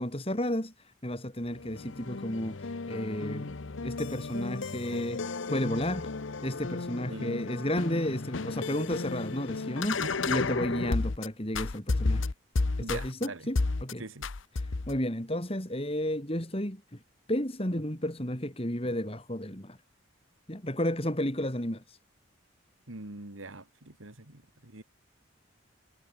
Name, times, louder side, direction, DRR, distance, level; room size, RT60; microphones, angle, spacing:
voice 1, 0.0-3.5 3.8-6.1 6.4-12.3 12.8-14.0 14.6-17.0 17.3-19.8 20.5-22.0, left 1 dB, 30° left, 3.6 m, -32 dB
sound 1, 1.5-11.3 11.5-13.3 13.6-13.9 14.2-15.0, left 3 dB, 75° left, 0.9 m, -33 dB
voice 2, 7.1-7.7 10.0-10.1 12.8-13.4 14.0-14.3 22.9-24.8, right 2 dB, 90° right, 2.7 m, -43 dB
head